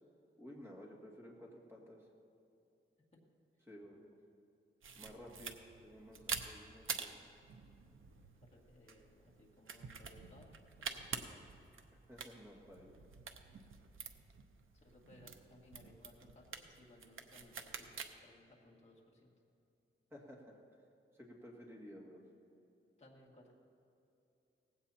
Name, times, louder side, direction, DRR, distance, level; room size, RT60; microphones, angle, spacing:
voice 1, 0.4-2.0 3.7-4.1 4.9-7.2 12.1-13.0 20.1-20.4 21.2-22.2, equal, 10° right, -2 dB, 2.1 m, -54 dB
sound 1, 4.8-18.1, right 5 dB, 70° right, 0.8 m, -48 dB
voice 2, 8.4-10.5 10.8-11.4 14.7-19.3 23.0-23.5, left 1 dB, 30° left, -3 dB, 2.1 m, -62 dB
18.0 x 16.0 x 2.9 m, 2.7 s
wide cardioid pair, 170°, 21 cm